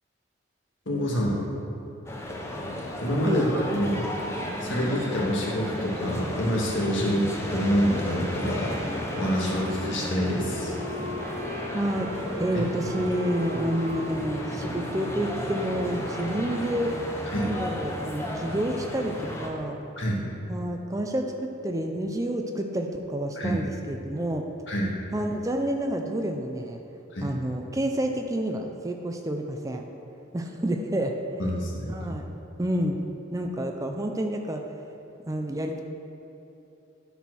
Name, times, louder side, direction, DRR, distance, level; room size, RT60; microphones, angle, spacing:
voice 1, 0.9-1.4 3.0-4.0 4.6-7.2 7.5-8.7 9.2-10.7 17.3-17.5 20.0-20.2 23.4-23.6 24.7-24.9 27.1-27.3 31.4-32.1, equal, 70° left, -3 dB, 1.7 m, -26 dB
sound 1, 2.1-19.5, left 1 dB, 15° left, 0.8 m, -34 dB
Wind instrument woodwind instrument, 8.7-17.1, left 1 dB, 50° right, 1.0 m, -40 dB
voice 2, 11.7-16.9 17.3-19.8 20.5-24.5 25.1-26.8 27.2-29.8 30.3-31.2 31.9-32.3 32.6-33.0 33.3-34.6 35.3-35.8, right 1 dB, 15° right, 3 dB, 0.4 m, -29 dB
10.5 x 4.3 x 6.1 m, 2.9 s
head